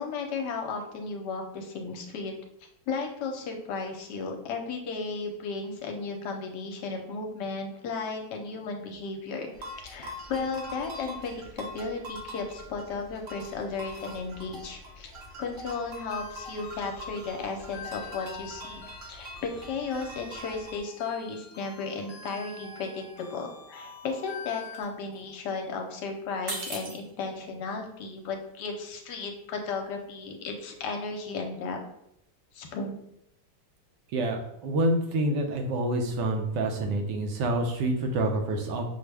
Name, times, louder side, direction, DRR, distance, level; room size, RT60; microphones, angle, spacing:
voice 1, 0.0-2.3 2.9-9.5 9.8-15.1 15.4-31.8 32.5-33.0, left 4 dB, 75° left, 3 dB, 1.2 m, -34 dB
sound 1, 9.5-20.8, equal, 55° right, 0.9 m, -44 dB
sound 2, 16.1-24.8, left 4 dB, 60° left, 1.1 m, -46 dB
sound 3, 22.3-22.5 22.8-23.5 23.8-26.0 26.3-31.3, right 2 dB, 90° right, 0.5 m, -42 dB
voice 2, 34.1-38.8, right 1 dB, 75° right, 3 dB, 1.3 m, -27 dB
6.1 x 2.1 x 3.3 m, 0.77 s
omnidirectional pair, 2.0 m